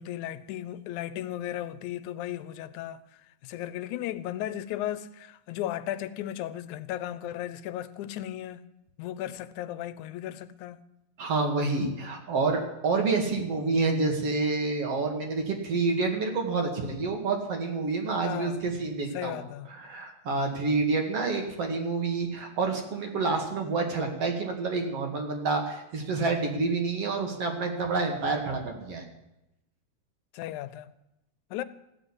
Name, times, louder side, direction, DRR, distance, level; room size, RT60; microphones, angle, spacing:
voice 1, 0.0-3.0 3.4-8.6 9.0-10.8 18.2-18.7 19.1-19.7 30.3-30.9 31.5-31.6, left 12 dB, 85° left, 2.1 m, -35 dB
voice 2, 11.2-19.4 19.7-29.0, right 3 dB, 55° right, 2.9 m, -28 dB
15.0 x 7.9 x 9.6 m
omnidirectional pair, 3.3 m